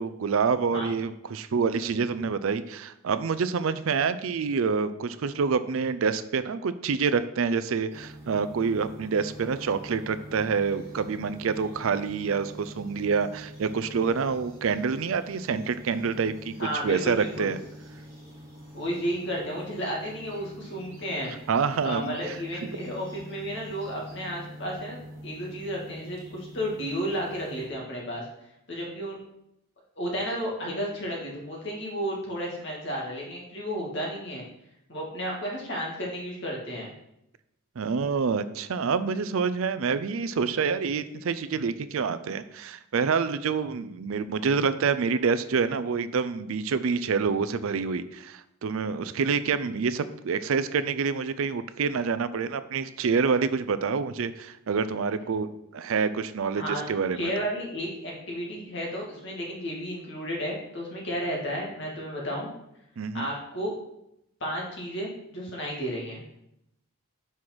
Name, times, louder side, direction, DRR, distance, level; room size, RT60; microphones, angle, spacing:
voice 1, 0.0-17.6 21.5-22.4 37.8-57.3 63.0-63.3, right 5 dB, 70° right, 13 dB, 0.4 m, -27 dB
sound 1, 7.9-27.7, equal, 15° right, 2.1 m, -45 dB
voice 2, 16.6-17.5 18.7-21.3 21.8-28.3 28.7-29.2 30.0-34.4 34.9-36.9 56.6-56.8 57.1-62.5 63.1-63.7 64.4-66.2, equal, 55° left, -3 dB, 2.2 m, -32 dB
5.6 x 4.8 x 6.0 m, 0.81 s
head